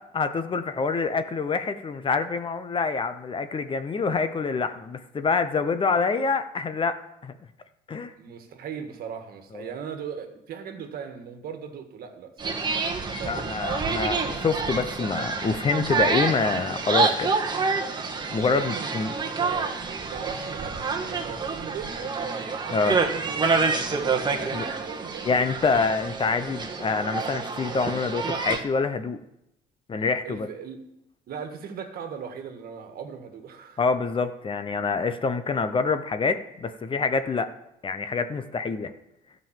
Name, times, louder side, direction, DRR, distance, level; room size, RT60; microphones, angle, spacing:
voice 1, 0.0-7.0 7.2-7.3 7.9-8.1 9.5-9.7 13.2-17.3 18.3-19.1 22.7-22.9 24.5-24.7 25.2-29.2 29.9-30.5 33.8-37.5 37.8-38.9, left 4 dB, 30° left, 10 dB, 0.8 m, -26 dB
voice 2, 8.2-12.6 13.1-13.5 18.5-22.2 22.6-25.8 30.2-30.8 31.3-33.8, right 7 dB, 65° right, 6 dB, 1.7 m, -39 dB
sound 1, 12.4-28.6, right 4 dB, 25° right, 1.5 m, -28 dB
13.0 x 5.4 x 7.4 m, 0.82 s
cardioid pair, 110°, 17 cm